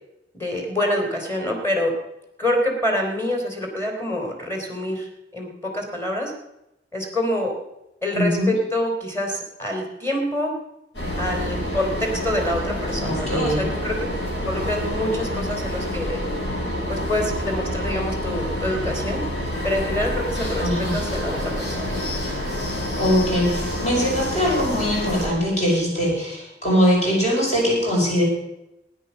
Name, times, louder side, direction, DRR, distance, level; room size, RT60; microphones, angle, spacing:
voice 1, 0.3-1.9 2.4-6.3 6.9-7.5 8.0-10.5 11.2-14.0 14.5-16.2 16.9-19.2 19.6-21.9, left 1 dB, 15° left, 3 dB, 3.2 m, -26 dB
voice 2, 8.1-8.5 13.0-13.6 20.6-21.0 23.0-28.2, equal, 40° left, -3 dB, 6.3 m, -21 dB
sound 1, 10.9-25.3, equal, 90° left, 7.5 m, -28 dB
sound 2, 19.5-23.9, left 1 dB, 60° left, 7.6 m, -39 dB
16.0 x 9.8 x 6.9 m, 0.87 s
head